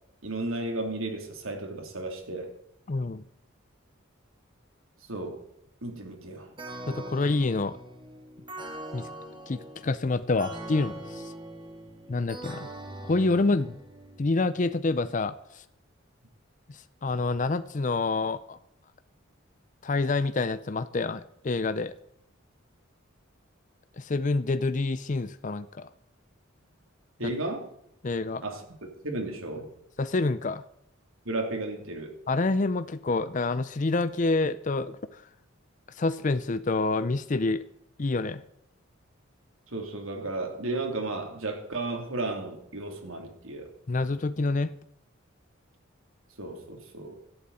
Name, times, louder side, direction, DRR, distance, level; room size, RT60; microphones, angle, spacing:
voice 1, 0.2-2.5 5.1-5.4 5.8-6.5 27.2-27.7 28.4-28.6 29.0-29.7 31.2-32.1 39.7-43.7 46.4-47.1, right 2 dB, 85° right, 3 dB, 3.2 m, -33 dB
voice 2, 2.9-3.2 6.9-7.8 8.9-9.1 9.5-11.3 12.1-12.7 13.0-13.8 14.2-15.6 16.7-18.6 19.8-21.9 24.0-25.9 27.2-27.3 28.0-28.4 30.0-30.6 32.3-35.2 36.0-37.6 38.0-38.4 43.9-44.7, left 3 dB, 35° left, 13 dB, 0.5 m, -27 dB
sound 1, 6.6-14.2, right 1 dB, 25° right, 1.8 m, -42 dB
17.5 x 12.0 x 4.2 m, 0.73 s
head